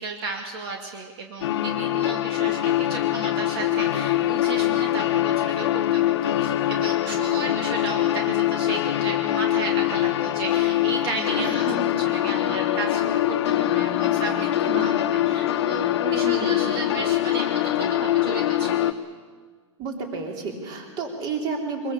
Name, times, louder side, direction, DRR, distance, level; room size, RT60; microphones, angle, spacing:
voice 1, 0.0-18.9, right 3 dB, 55° right, 3 dB, 2.4 m, -34 dB
sound 1, 1.4-18.9, left 13 dB, 60° left, 1.2 m, -23 dB
voice 2, 11.4-11.8 14.7-14.9 16.0-16.7 19.8-21.9, right 3 dB, 25° right, 2 dB, 3.7 m, -31 dB
24.0 x 21.5 x 7.1 m, 1.6 s
supercardioid pair, 160°, 16 cm